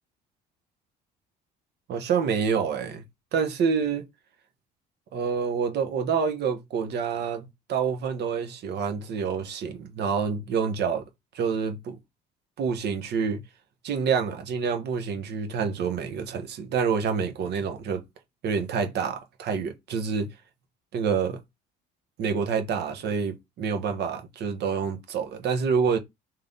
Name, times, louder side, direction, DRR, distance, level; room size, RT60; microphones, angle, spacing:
voice 1, 1.9-3.0 3.3-4.0 5.1-11.0 11.3-12.0 12.6-13.4 13.8-18.0 18.4-20.3 20.9-21.4 22.2-26.0, right 6 dB, 60° right, 1.1 m, -27 dB
3.2 x 2.9 x 3.9 m
supercardioid pair, 90°, 19 cm